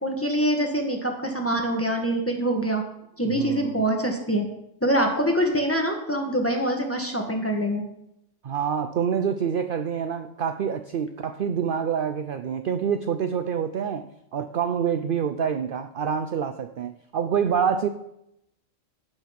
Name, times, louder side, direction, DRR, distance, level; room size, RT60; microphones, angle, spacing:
voice 1, 0.0-2.8 3.2-4.5 4.8-7.8, right 1 dB, 10° left, 2 dB, 1.7 m, -24 dB
voice 2, 3.3-3.8 8.4-17.9, right 7 dB, 55° right, 10 dB, 0.6 m, -27 dB
15.5 x 5.6 x 5.9 m, 0.81 s
omnidirectional pair, 1.4 m